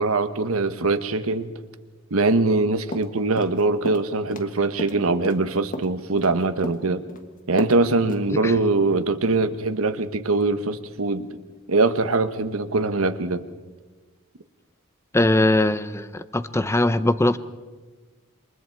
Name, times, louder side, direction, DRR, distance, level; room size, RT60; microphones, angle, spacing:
voice 1, 0.0-1.5 2.1-7.0 7.5-11.3 11.7-13.5, right 3 dB, 75° right, 10 dB, 1.1 m, -22 dB
sound 1, 2.9-3.6 3.9-4.5 4.8-6.3 6.6-7.2 7.6-7.8 8.1-8.2, left 1 dB, 40° left, 1.4 m, -33 dB
voice 2, 8.3-8.6 15.1-17.4, left 1 dB, 15° left, 13 dB, 0.6 m, -21 dB
27.5 x 23.0 x 4.6 m, 1.3 s
head